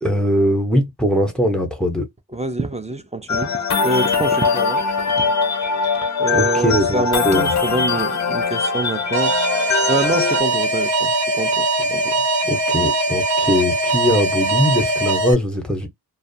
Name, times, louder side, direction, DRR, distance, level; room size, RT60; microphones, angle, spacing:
voice 1, 0.0-2.0 6.3-7.5 12.5-15.9, equal, ahead, 0.8 m, -20 dB
voice 2, 2.3-4.8 5.1-5.3 6.2-9.4 9.9-12.3, right 2 dB, 15° right, 0.4 m, -26 dB
sound 1, 3.3-10.4, left 5 dB, 45° left, 0.4 m, -21 dB
Alarm, 9.1-15.3, right 2 dB, 70° right, 1.0 m, -20 dB
2.3 x 2.2 x 2.6 m
wide cardioid pair, 60°, 42 cm